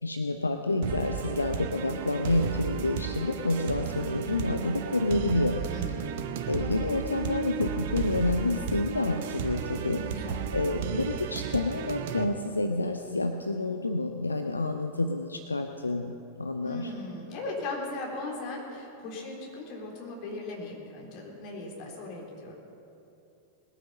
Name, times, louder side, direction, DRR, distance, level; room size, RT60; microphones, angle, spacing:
voice 1, 0.0-5.7 6.5-10.0 10.5-16.9, left 2 dB, 80° left, 6 dB, 0.5 m, -29 dB
sound 1, 0.8-12.2, right 8 dB, 55° right, 0.9 m, -34 dB
voice 2, 5.7-6.1 9.8-10.4 16.6-22.5, left 2 dB, 40° left, -2 dB, 3.5 m, -38 dB
20.5 x 9.1 x 5.6 m, 2.7 s
figure-of-eight pair, 90°, 0 cm